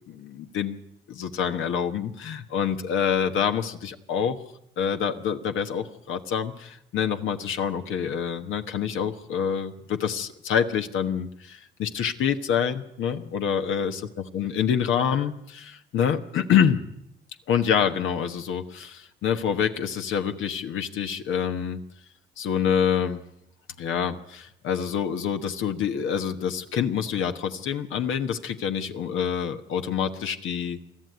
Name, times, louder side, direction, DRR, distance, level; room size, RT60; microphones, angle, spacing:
voice 1, 0.0-4.4 4.8-14.0 14.3-16.8 17.5-21.8 22.4-23.2 23.8-30.8, left 8 dB, 80° left, 7 dB, 1.3 m, -26 dB
22.0 x 13.5 x 9.5 m, 0.80 s
cardioid pair, 90°, 20 cm